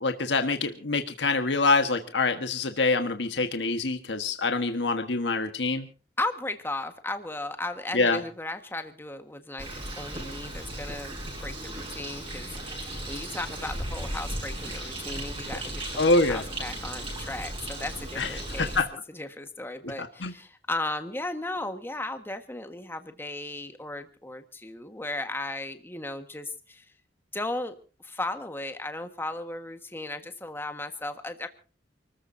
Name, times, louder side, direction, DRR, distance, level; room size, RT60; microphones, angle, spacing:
voice 1, 0.0-5.9 7.9-8.2 16.0-16.4 18.2-18.9 20.0-20.3, left 3 dB, 75° left, 7 dB, 1.4 m, -25 dB
voice 2, 6.2-18.8 19.1-26.8 27.3-27.7 28.0-31.5, left 2 dB, 15° left, 7 dB, 1.5 m, -36 dB
Bird, 9.6-18.8, right 1 dB, 30° right, 7.7 m, -36 dB
29.0 x 14.0 x 2.7 m, 0.37 s
head